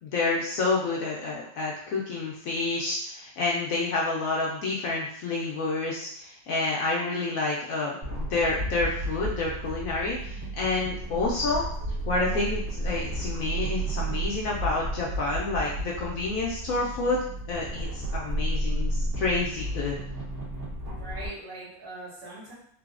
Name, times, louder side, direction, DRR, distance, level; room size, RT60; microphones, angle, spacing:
voice 1, 0.0-11.7 12.1-17.2 17.5-20.0, left 3 dB, 70° left, -3 dB, 0.8 m, -29 dB
sound 1, 8.0-21.3, right 1 dB, 50° right, 1.4 m, -32 dB
voice 2, 20.8-22.5, right 1 dB, 85° right, -7 dB, 1.8 m, -41 dB
3.8 x 2.0 x 2.4 m, 0.67 s
omnidirectional pair, 1.8 m